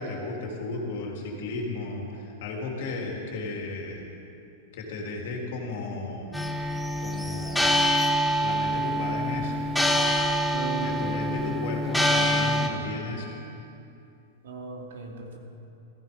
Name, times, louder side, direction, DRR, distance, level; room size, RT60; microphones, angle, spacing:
voice 1, 0.0-4.0 4.7-6.4 7.0-7.7 8.4-9.6 10.8-13.3, left 3 dB, 60° left, 0 dB, 3.0 m, -34 dB
sound 1, 6.3-12.7, equal, ahead, 0.8 m, -25 dB
voice 2, 10.5-11.0 14.4-15.4, right 5 dB, 85° right, 0 dB, 2.8 m, -36 dB
15.5 x 14.5 x 5.3 m, 2.8 s
supercardioid pair, 165°, 0 cm